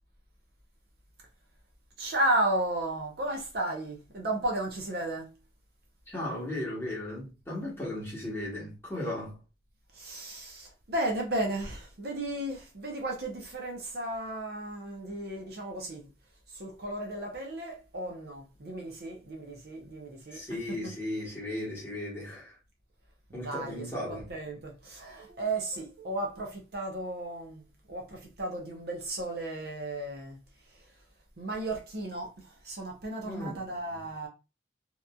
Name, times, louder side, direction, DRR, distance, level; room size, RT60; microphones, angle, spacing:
voice 1, 2.0-5.3 9.9-16.1 16.5-20.4 20.7-20.9 23.3-30.4 30.7-30.9 31.4-34.3, right 1 dB, 55° right, 0.6 m, -34 dB
voice 2, 6.1-9.4 20.3-22.6 23.3-24.3 33.2-33.7, left 1 dB, 10° left, 1.0 m, -36 dB
2.8 x 2.5 x 2.2 m
head